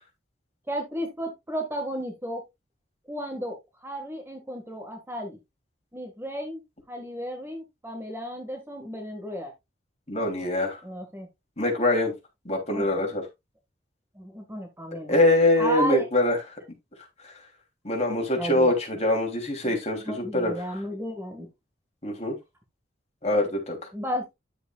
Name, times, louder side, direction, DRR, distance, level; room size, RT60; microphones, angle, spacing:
voice 1, 0.7-2.4 3.1-5.4 5.9-6.6 6.9-9.5 10.6-11.3 12.7-13.1 14.2-15.2 15.6-16.1 18.3-18.7 19.6-19.8 20.0-21.5 23.9-24.3, equal, 10° right, 1.7 m, -33 dB
voice 2, 10.1-10.8 11.6-12.1 12.4-13.2 15.1-16.4 17.8-20.5 22.0-22.4 23.2-23.8, left 1 dB, 35° left, 3.1 m, -23 dB
10.0 x 8.0 x 2.4 m
head